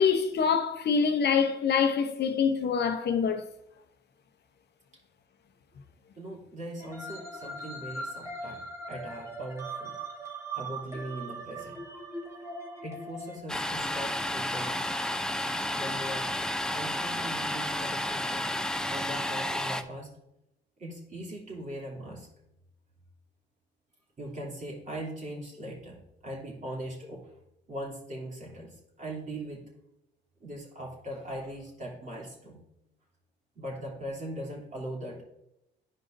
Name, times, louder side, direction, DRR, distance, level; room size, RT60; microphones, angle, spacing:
voice 1, 0.0-3.4, left 6 dB, 55° left, 0.7 m, -25 dB
voice 2, 6.2-9.9 10.5-11.8 12.8-14.9 15.7-16.3 16.7-18.5 18.9-20.1 20.8-22.3 24.2-27.3 27.7-29.6 30.4-32.6 33.5-35.2, right 1 dB, 40° right, 2.8 m, -40 dB
sound 1, 6.8-13.4, right 2 dB, 15° right, 2.1 m, -40 dB
Domestic sounds home sounds, 13.5-19.8, left 1 dB, 5° left, 0.5 m, -31 dB
12.0 x 5.0 x 2.6 m
cardioid pair, 90°, 20 cm